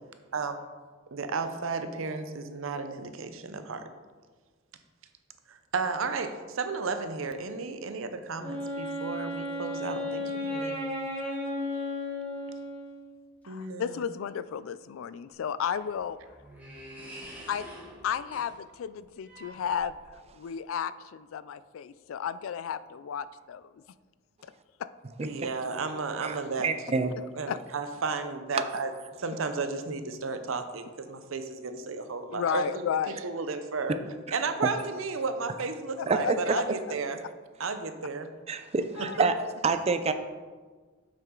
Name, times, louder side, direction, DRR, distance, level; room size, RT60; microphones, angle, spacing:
voice 1, 1.1-3.8 5.5-10.8 13.5-14.0 25.2-27.1 27.4-28.9 29.2-32.7 33.2-34.0 34.3-37.2 37.6-38.3 39.2-39.3, right 4 dB, 75° right, 9 dB, 0.7 m, -33 dB
Wind instrument woodwind instrument, 8.4-13.2, left 1 dB, 10° left, 2.3 m, -34 dB
voice 2, 13.4-16.2 17.0-17.7 18.0-23.8 24.4-24.5 24.8-24.9 27.5-27.6 32.3-33.2 36.0-36.3 39.0-39.2, left 8 dB, 75° left, 15 dB, 0.3 m, -33 dB
sound 1, 15.3-20.3, equal, 10° right, 1.6 m, -48 dB
voice 3, 25.2-25.5 26.2-27.1 28.5-28.6 34.3-34.7 36.1-36.6 38.5-39.3 39.6-40.1, right 4 dB, 30° right, 9 dB, 0.4 m, -28 dB
7.5 x 6.2 x 3.8 m, 1.4 s
head